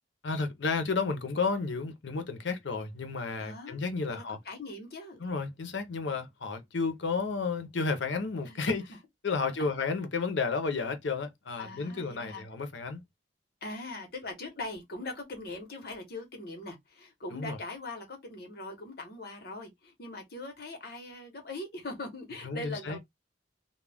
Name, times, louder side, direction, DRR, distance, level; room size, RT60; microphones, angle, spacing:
voice 1, 0.2-4.4 5.2-8.9 9.2-13.0 17.3-17.6 22.4-23.0, left 4 dB, 85° left, 0.6 m, -32 dB
voice 2, 3.4-3.8 4.1-5.2 8.5-8.7 9.4-9.5 11.6-12.4 13.6-23.0, left 2 dB, 60° left, 1.0 m, -41 dB
2.3 x 2.1 x 3.3 m
head